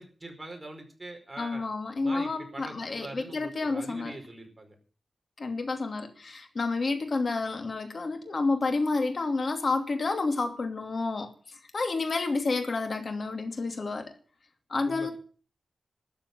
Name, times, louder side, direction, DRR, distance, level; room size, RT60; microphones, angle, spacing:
voice 1, 0.0-1.6 2.0-4.7 14.9-15.1, right 2 dB, 20° right, 4.8 m, -43 dB
voice 2, 1.4-4.2 5.4-14.1 14.7-15.1, left 3 dB, 55° left, 2.7 m, -30 dB
13.0 x 7.5 x 9.5 m
wide cardioid pair, 85°, 0 cm